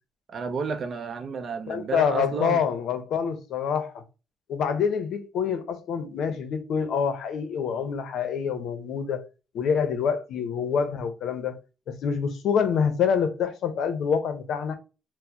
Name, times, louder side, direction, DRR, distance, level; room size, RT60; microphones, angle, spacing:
voice 1, 0.3-2.6, right 5 dB, 40° right, 0.5 m, -31 dB
voice 2, 1.7-4.0 4.5-9.3 9.5-11.6 11.9-14.8, left 6 dB, 70° left, 0.6 m, -26 dB
4.3 x 2.0 x 2.7 m
cardioid pair, 165°, 0 cm